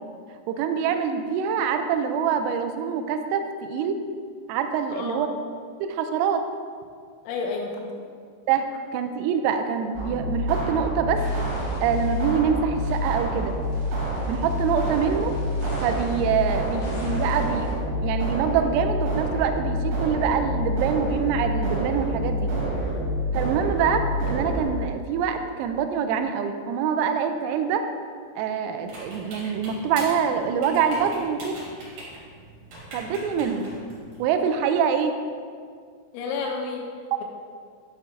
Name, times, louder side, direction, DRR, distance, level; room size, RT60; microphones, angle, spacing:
voice 1, 0.5-4.0 4.5-5.3 5.8-6.4 8.5-8.7 8.9-11.2 11.8-13.5 14.3-15.3 15.8-22.5 23.3-27.8 28.4-31.6 32.9-33.7 34.2-35.1, right 7 dB, 90° right, 7 dB, 3.3 m, -25 dB
voice 2, 4.9-5.3 7.3-7.9 14.8-14.9 36.1-36.9, left 4 dB, 80° left, 1 dB, 2.7 m, -30 dB
sound 1, 10.0-24.7, equal, 75° right, 4.3 m, -27 dB
sound 2, 11.1-12.3 12.7-17.7, equal, 60° left, 2.1 m, -40 dB
sound 3, 28.8-34.3, right 1 dB, 55° right, 3.6 m, -42 dB
10.5 x 7.5 x 2.6 m, 2.1 s
omnidirectional pair, 5.9 m